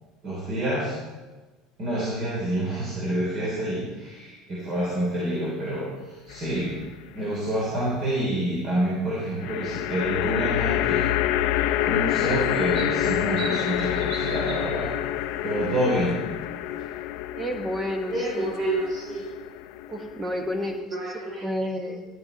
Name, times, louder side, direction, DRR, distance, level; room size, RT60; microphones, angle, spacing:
voice 1, 0.2-1.0 1.8-6.7 7.1-11.1 11.8-14.9 15.4-16.2 18.1-19.3 20.9-21.5, right 1 dB, 35° right, -5 dB, 3.2 m, -28 dB
sound 1, 6.3-6.9 9.4-20.8, left 13 dB, 65° left, 0.6 m, -28 dB
sound 2, 11.0-16.1 16.4-16.8 18.0-19.3, right 4 dB, 50° right, 1.8 m, -43 dB
voice 2, 17.3-18.6 19.9-21.0 21.4-22.1, left 1 dB, 10° right, 5 dB, 1.1 m, -30 dB
13.5 x 10.5 x 4.0 m, 1.3 s
cardioid pair, 160°, 0 cm